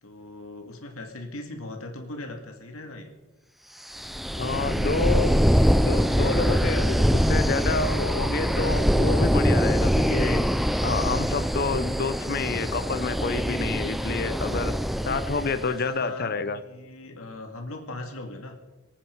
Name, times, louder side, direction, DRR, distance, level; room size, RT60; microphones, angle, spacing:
voice 1, 0.0-3.1 15.1-15.2 15.5-18.6, left 2 dB, 85° left, 4 dB, 2.3 m, -39 dB
sound 1, 3.9-15.7, equal, ahead, 0.4 m, -23 dB
voice 2, 4.4-5.4 5.8-10.5 10.8-14.7 15.1-16.6, left 4 dB, 50° left, 14 dB, 0.7 m, -29 dB
sound 2, 7.2-13.6, right 1 dB, 40° right, 1.5 m, -40 dB
24.5 x 8.8 x 4.7 m, 1.2 s
head